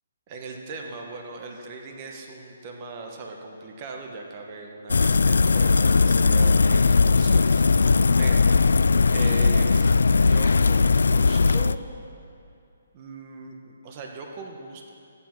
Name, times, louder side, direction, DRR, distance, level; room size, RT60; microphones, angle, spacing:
voice 1, 0.3-8.4 9.1-9.9 10.2-11.8 12.9-14.9, right 3 dB, 30° right, 2 dB, 1.3 m, -39 dB
sound 1, 4.9-11.7, left 4 dB, 85° left, 0.3 m, -19 dB
14.0 x 9.7 x 6.1 m, 2.6 s
hypercardioid pair, 155°, 0 cm